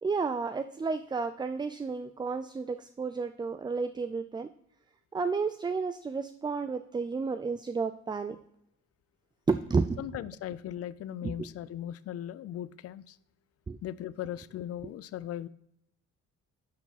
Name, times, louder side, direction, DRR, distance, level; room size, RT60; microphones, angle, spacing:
voice 1, 0.0-4.5 5.1-8.4 9.5-10.0 11.2-11.5 13.7-13.8, right 4 dB, 15° right, 10 dB, 0.3 m, -31 dB
voice 2, 10.0-13.2 13.8-15.5, left 11 dB, 50° left, 17 dB, 0.5 m, -38 dB
11.0 x 4.7 x 4.0 m, 0.75 s
cardioid pair, 90°, 30 cm